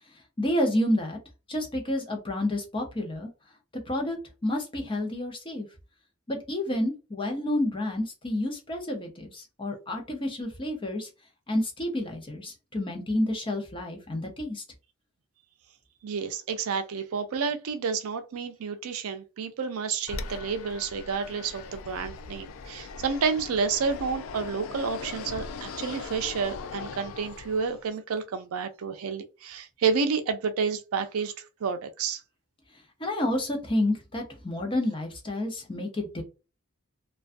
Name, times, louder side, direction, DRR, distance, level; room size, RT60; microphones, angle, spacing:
voice 1, 0.4-1.2 1.5-3.3 3.9-5.7 6.3-11.1 11.5-14.6 33.0-36.2, left 1 dB, 25° left, 0.6 m, -29 dB
voice 2, 16.0-31.3 31.6-32.2, right 5 dB, 75° right, 0.4 m, -30 dB
Fixed-wing aircraft airplane, 20.1-27.9, left 4 dB, 65° left, 0.3 m, -40 dB
2.3 x 2.2 x 2.5 m
head